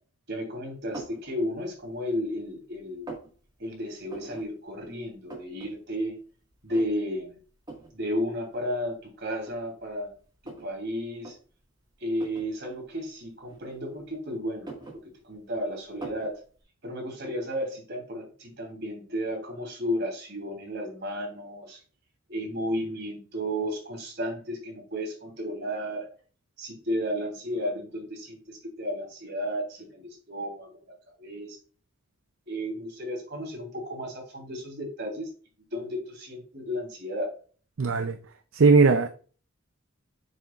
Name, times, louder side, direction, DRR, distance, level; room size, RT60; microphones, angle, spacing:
voice 1, 0.3-3.1 3.6-6.2 6.6-7.3 7.9-10.1 10.4-11.4 12.0-14.7 15.0-16.4 16.8-21.8 22.3-26.1 26.6-30.8 31.1-31.6 32.5-35.3 35.7-37.3, equal, 55° right, 3.1 m, -33 dB
sound 1, 0.9-1.3 1.8-2.4 2.7-3.3 4.1-4.5 4.8-4.9 5.1-5.7 6.0-6.1 6.7-7.2 7.7-7.9 8.8-8.9 9.4-10.7 11.1-11.4 12.1-12.5 13.5-14.1 14.5-15.5 16.0-16.3, right 2 dB, 20° right, 1.8 m, -42 dB
voice 2, 37.8-38.2 38.5-39.1, right 4 dB, 70° right, 0.5 m, -19 dB
7.3 x 6.5 x 2.4 m
head